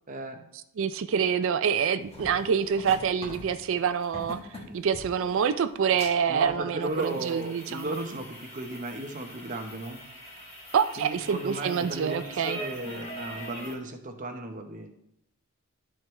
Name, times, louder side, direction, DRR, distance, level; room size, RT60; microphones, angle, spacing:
voice 1, 0.1-0.5 4.7-4.8 6.3-10.0 11.0-14.9, right 2 dB, 35° right, 4 dB, 0.9 m, -35 dB
voice 2, 0.8-4.4 4.7-7.9 10.7-12.6, right 7 dB, 60° right, 11 dB, 0.4 m, -26 dB
sound 1, 2.0-13.7, equal, 25° left, 1.6 m, -43 dB
12.0 x 4.6 x 3.2 m, 0.75 s
head